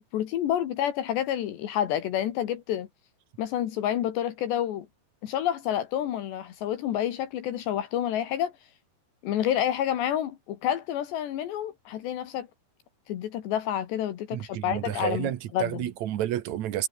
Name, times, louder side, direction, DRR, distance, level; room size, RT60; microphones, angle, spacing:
voice 1, 0.0-2.9 3.4-4.9 5.2-8.5 9.2-12.5 13.1-15.9, left 11 dB, 75° left, 4.0 m, -29 dB
voice 2, 14.3-16.9, right 12 dB, 75° right, 1.6 m, -30 dB
omnidirectional pair, 5.1 m